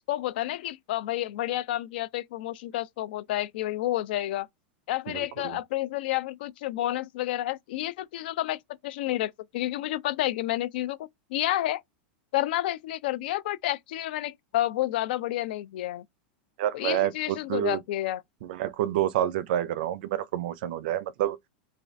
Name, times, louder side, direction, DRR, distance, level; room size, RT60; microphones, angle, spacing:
voice 1, 0.1-4.5 4.9-11.0 11.3-11.8 12.3-16.0 16.7-18.2, left 14 dB, 70° left, 0.3 m, -30 dB
voice 2, 5.1-5.6 16.6-17.8 18.4-21.4, right 12 dB, 65° right, 0.4 m, -28 dB
2.4 x 2.3 x 3.1 m
supercardioid pair, 145°, 5 cm